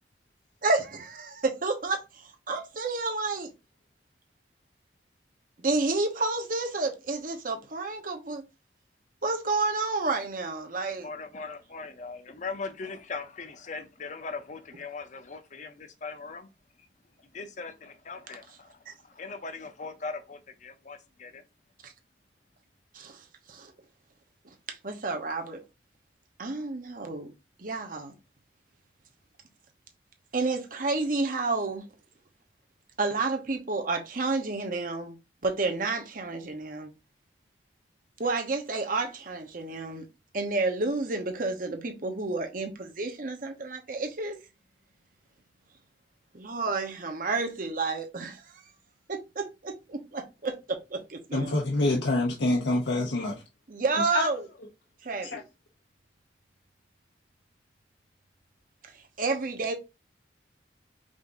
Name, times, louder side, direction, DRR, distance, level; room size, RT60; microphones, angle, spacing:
voice 1, 0.6-3.5 5.6-8.4 9.2-11.1 18.9-19.0 21.8-21.9 22.9-23.7 24.7-25.6 26.4-27.3 27.6-28.1 30.3-31.8 33.0-35.2 35.4-36.9 38.2-40.1 40.3-44.4 46.3-48.4 49.1-51.5 53.7-54.5 55.0-55.4 59.2-59.7, right 3 dB, 50° right, 1.0 m, -30 dB
voice 2, 11.0-16.5 17.3-21.4, left 4 dB, 45° left, 0.7 m, -40 dB
voice 3, 51.3-53.4 54.1-54.3 55.3-55.4, left 2 dB, 80° left, 0.8 m, -26 dB
5.1 x 2.7 x 3.8 m
head